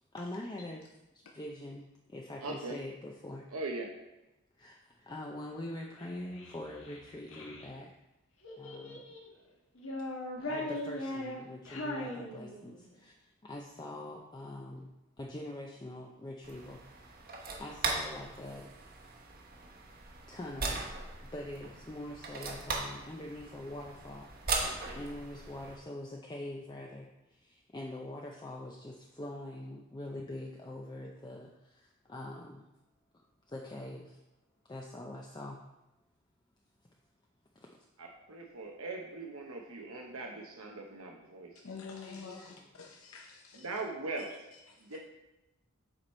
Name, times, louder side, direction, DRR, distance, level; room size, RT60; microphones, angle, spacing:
voice 1, 0.1-3.5 4.5-8.0 8.6-9.0 10.4-16.8 17.6-18.7 20.3-20.8 21.2-24.3 24.9-32.7 33.1-34.2 34.6-35.6 37.5-37.7 42.1-42.7, left 1 dB, 20° left, 0 dB, 0.5 m, -44 dB
voice 2, 2.4-2.8 3.5-3.9 38.0-41.6 43.5-44.3 44.8-45.0, right 3 dB, 85° right, 1 dB, 0.9 m, -40 dB
Child speech kid speaking, 6.0-7.7 8.4-9.3 9.7-12.9, left 1 dB, 70° left, 1.5 m, -40 dB
sound 1, 16.4-25.8, right 3 dB, 45° right, 1.1 m, -39 dB
voice 3, 41.6-43.7 44.2-45.0, left 5 dB, 90° left, 1 dB, 0.7 m, -48 dB
7.7 x 4.7 x 4.2 m, 0.96 s
head